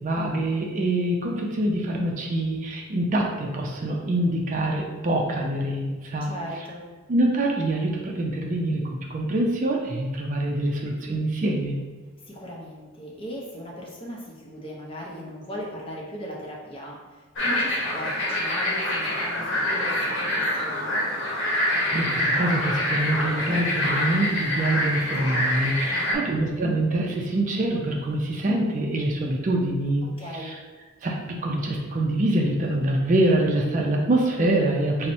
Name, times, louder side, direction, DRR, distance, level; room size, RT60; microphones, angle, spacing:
voice 1, 0.0-6.3 7.1-11.8 21.5-30.1 30.3-30.5 31.0-35.1, right 1 dB, 35° right, 0 dB, 0.4 m, -25 dB
voice 2, 6.2-6.8 12.2-20.9 25.9-26.3 30.0-30.6, equal, 25° left, -3 dB, 0.6 m, -38 dB
sound 1, 17.4-26.1, left 1 dB, 55° left, 0.9 m, -26 dB
5.5 x 2.0 x 2.6 m, 1.3 s
head